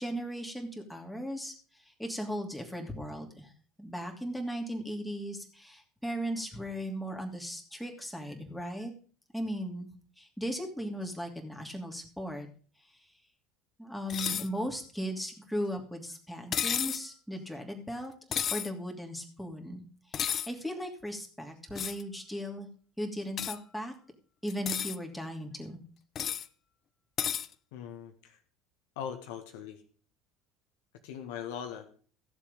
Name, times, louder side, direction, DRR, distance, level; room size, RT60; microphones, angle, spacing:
voice 1, 0.0-3.5 3.8-8.9 9.3-9.9 10.2-12.5 13.8-18.1 18.5-22.7 23.0-23.9 24.4-25.8, equal, ahead, 1 dB, 2.9 m, -37 dB
sound 1, 14.1-14.5 16.5-17.0 18.3-18.7 20.1-20.5 21.8-22.0 23.4-23.6 24.5-25.0 26.2-26.5 27.2-27.5, left 8 dB, 40° left, 0.6 m, -32 dB
voice 2, 27.7-28.4 28.9-29.8 31.0-31.9, left 8 dB, 65° left, 5 dB, 1.7 m, -40 dB
14.5 x 7.4 x 5.3 m, 0.42 s
figure-of-eight pair, 70°, 0 cm